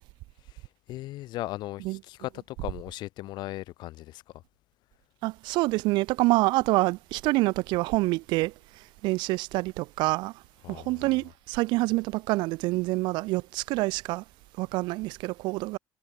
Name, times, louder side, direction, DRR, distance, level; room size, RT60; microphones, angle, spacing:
voice 1, 0.4-4.4 10.6-11.2, left 16 dB, 65° left, 6.2 m, -38 dB
voice 2, 5.2-8.5 9.0-10.3 10.7-14.2 14.6-15.8, right 22 dB, 70° right, 0.5 m, -26 dB
supercardioid pair, 105°, 8 cm